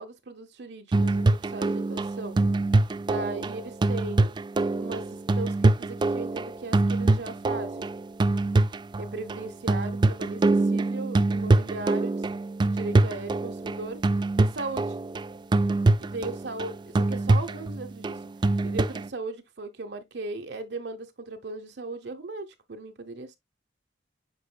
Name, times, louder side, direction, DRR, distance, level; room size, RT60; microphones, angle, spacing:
voice 1, 0.0-2.4 3.0-4.3 4.8-7.8 9.0-12.2 12.6-14.0 14.4-15.0 16.0-16.7 17.1-18.2 18.6-23.4, right 2 dB, 65° right, 0.9 m, -37 dB
sound 1, 0.9-19.1, right 2 dB, 25° right, 0.3 m, -24 dB
8.3 x 5.4 x 2.2 m
head